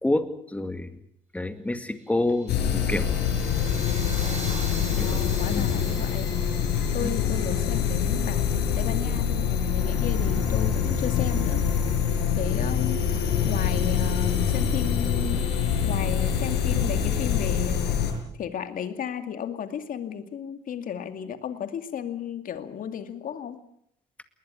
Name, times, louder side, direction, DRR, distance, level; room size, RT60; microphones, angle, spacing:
voice 1, 0.0-0.9 1.3-3.1 5.0-5.2 5.5-5.7 7.0-7.1, left 2 dB, 10° left, 9 dB, 2.2 m, -28 dB
sound 1, 2.0-8.8, right 3 dB, 45° right, 7.5 m, -43 dB
sound 2, 2.5-18.1, left 7 dB, 80° left, 5.7 m, -25 dB
voice 2, 4.9-6.3 6.9-11.6 12.0-15.5 15.8-18.0 18.4-23.6, left 8 dB, 55° left, 9 dB, 2.3 m, -34 dB
20.5 x 20.0 x 8.5 m, 0.69 s
cardioid pair, 110°, 17 cm